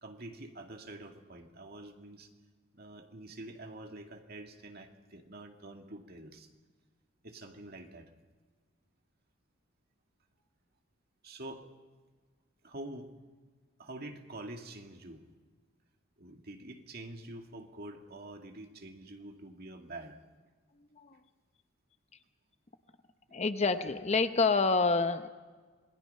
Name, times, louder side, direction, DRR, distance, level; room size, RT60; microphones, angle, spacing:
voice 1, 0.0-2.3 2.7-6.5 7.2-8.1 11.2-11.7 12.6-13.1 13.8-15.3 16.2-20.2, right 1 dB, 50° right, 4 dB, 2.2 m, -46 dB
voice 2, 23.3-25.3, left 4 dB, 30° left, 10 dB, 0.8 m, -27 dB
27.0 x 20.0 x 5.6 m, 1.4 s
head